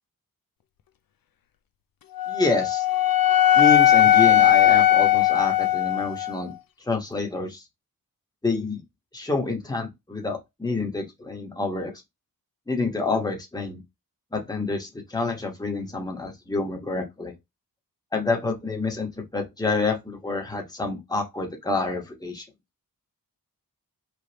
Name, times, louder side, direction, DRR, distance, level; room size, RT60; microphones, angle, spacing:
Wind instrument woodwind instrument, 2.2-6.4, left 12 dB, 75° left, 0.5 m, -18 dB
voice 1, 2.3-2.8 3.5-6.5 6.9-7.6 8.4-8.8 9.1-11.9 12.7-13.8 14.3-17.3 18.1-22.4, left 3 dB, 10° left, 1.3 m, -28 dB
4.8 x 3.3 x 2.9 m
wide cardioid pair, 95°, 35 cm